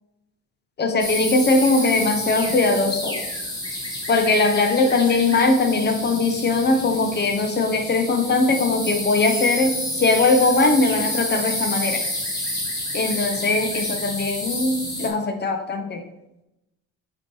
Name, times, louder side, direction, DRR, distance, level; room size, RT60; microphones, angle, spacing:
voice 1, 0.8-3.2 4.1-12.0 12.9-16.0, left 3 dB, 35° left, 5 dB, 0.9 m, -20 dB
sound 1, 1.0-15.1, left 1 dB, 15° left, 1.9 m, -29 dB
7.5 x 3.0 x 4.6 m, 0.91 s
cardioid pair, 95°, 29 cm